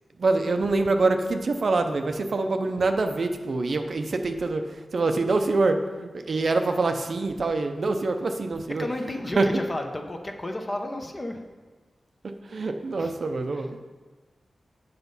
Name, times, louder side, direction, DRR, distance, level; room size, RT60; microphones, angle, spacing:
voice 1, 0.2-4.6 4.9-8.9 9.4-9.5 12.5-13.9, right 3 dB, 55° right, 6 dB, 0.6 m, -25 dB
voice 2, 8.7-11.4 13.0-13.1 13.5-13.7, left 1 dB, 25° left, 4 dB, 0.8 m, -32 dB
8.1 x 5.2 x 5.4 m, 1.4 s
wide cardioid pair, 125°, 0 cm